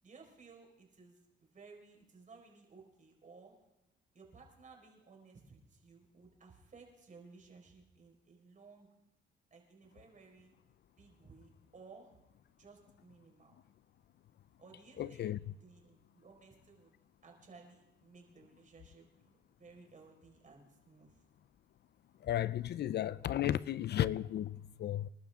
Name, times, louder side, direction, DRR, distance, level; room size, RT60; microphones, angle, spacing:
voice 1, 0.0-3.6 4.1-8.9 9.5-10.5 11.0-12.2 12.6-13.6 14.6-15.3 15.6-16.9 17.2-21.2, right 4 dB, 40° right, 4.7 m, -58 dB
voice 2, 15.0-15.4 22.2-25.1, left 12 dB, 55° left, 0.5 m, -34 dB
27.5 x 12.0 x 3.6 m
cardioid pair, 90°, 20 cm